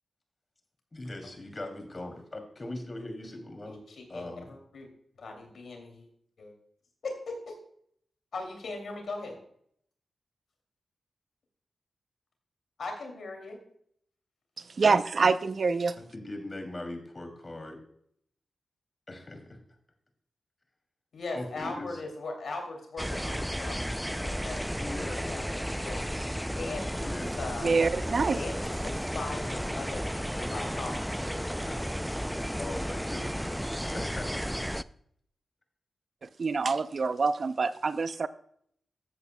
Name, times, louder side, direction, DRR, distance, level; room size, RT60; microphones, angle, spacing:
voice 1, 0.9-3.8 4.1-4.6 16.0-17.8 19.1-19.6 21.3-22.0 24.8-25.3 26.9-27.4 32.6-34.7, left 1 dB, 40° left, 5 dB, 2.6 m, -40 dB
voice 2, 3.7-4.9 5.1-6.1 6.4-6.5 7.0-7.5 8.3-9.4 12.8-13.6 21.1-23.8 24.2-26.1 26.5-27.7 28.3-31.9, left 3 dB, 75° left, 3 dB, 2.5 m, -39 dB
voice 3, 14.8-16.0 27.6-28.4 36.4-38.3, right 4 dB, 60° right, 13 dB, 0.5 m, -26 dB
sound 1, 23.0-34.8, equal, ahead, 0.4 m, -33 dB
14.0 x 8.2 x 2.2 m, 0.67 s
supercardioid pair, 40°, 0 cm